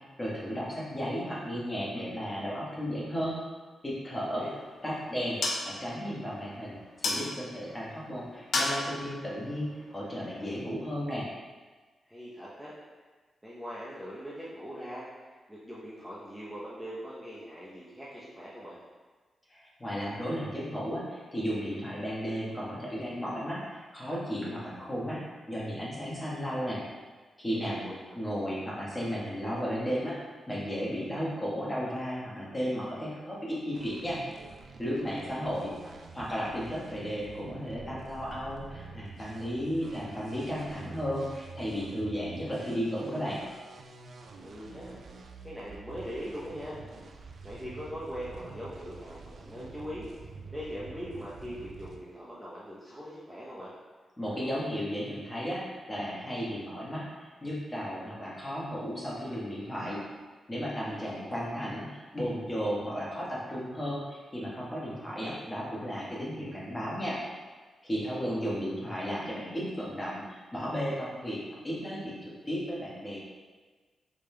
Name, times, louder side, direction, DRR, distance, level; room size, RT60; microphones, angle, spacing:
voice 1, 0.2-3.4 3.8-4.4 4.8-11.2 19.5-25.2 25.5-26.8 27.4-27.9 28.1-34.2 34.8-35.7 36.1-43.4 54.2-60.0 60.5-67.2 67.8-73.2, equal, 20° left, -6 dB, 1.3 m, -34 dB
sound 1, 4.2-10.7, left 2 dB, 70° left, 0.5 m, -36 dB
voice 2, 4.2-4.6 12.0-12.7 13.4-18.8 27.5-28.1 35.8-35.9 44.4-45.0 45.4-46.8 47.4-53.7 60.9-61.4 68.0-68.5, equal, 5° right, -8 dB, 0.8 m, -41 dB
sound 2, 33.7-52.0, right 4 dB, 65° right, 0.4 m, -47 dB
5.0 x 3.3 x 2.2 m, 1.3 s
cardioid pair, 75°, 0 cm